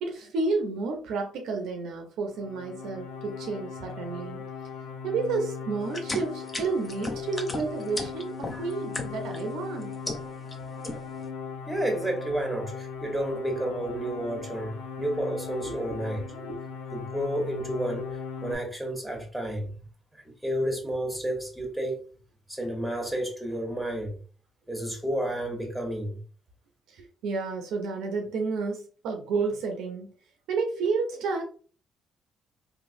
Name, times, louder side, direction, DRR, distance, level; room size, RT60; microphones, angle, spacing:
voice 1, 0.0-4.4 5.0-9.9 15.7-16.0 16.4-16.6 26.9-30.1 30.5-31.4, right 4 dB, 70° right, 0.5 m, -31 dB
sound 1, 2.3-18.6, left 6 dB, 75° left, 0.4 m, -39 dB
sound 2, 5.9-9.4 9.8-10.5 10.8-11.2, left 1 dB, 30° left, 0.6 m, -35 dB
voice 2, 11.7-16.2 16.9-18.1 18.4-19.7 20.1-22.0 22.5-24.2 24.7-26.2, right 1 dB, ahead, 1.2 m, -31 dB
3.1 x 2.1 x 2.5 m
hypercardioid pair, 50°, 0 cm